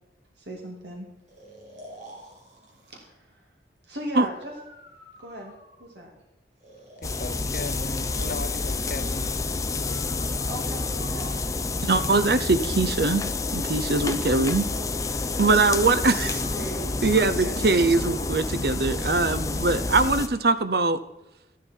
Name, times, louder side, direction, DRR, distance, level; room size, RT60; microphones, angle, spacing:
voice 1, 0.4-1.1 2.9-3.4 3.9-4.5 5.2-5.5 5.8-6.1 8.1-8.4 10.5-11.4 14.7-14.9 15.7-16.9 17.2-18.1, equal, 75° right, 2.5 m, -39 dB
Breathing, 1.3-3.1 4.4-6.1 6.6-8.4 9.8-12.0 12.8-14.0 15.6-18.5, right 1 dB, 40° right, 3.4 m, -49 dB
voice 2, 7.0-9.3 9.9-10.5, left 2 dB, 50° left, 0.8 m, -38 dB
sound 1, 7.0-20.3, left 3 dB, 20° left, 0.6 m, -29 dB
voice 3, 11.8-14.7 15.4-16.4 17.0-21.0, right 3 dB, 60° right, 0.7 m, -22 dB
12.5 x 11.5 x 4.5 m
head